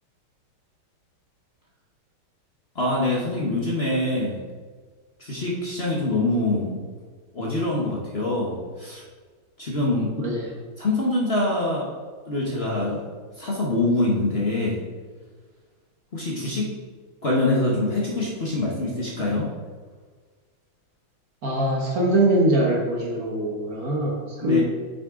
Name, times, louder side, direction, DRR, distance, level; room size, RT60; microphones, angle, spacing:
voice 1, 2.7-4.4 5.2-6.8 7.3-9.0 9.6-10.1 10.8-11.9 12.3-13.0 13.4-14.8 16.1-16.7 17.2-19.5 24.4-24.6, left 2 dB, 35° left, -4 dB, 1.3 m, -24 dB
voice 2, 21.4-24.6, right 1 dB, 50° right, -1 dB, 1.4 m, -22 dB
8.3 x 6.9 x 3.8 m, 1.5 s
omnidirectional pair, 2.3 m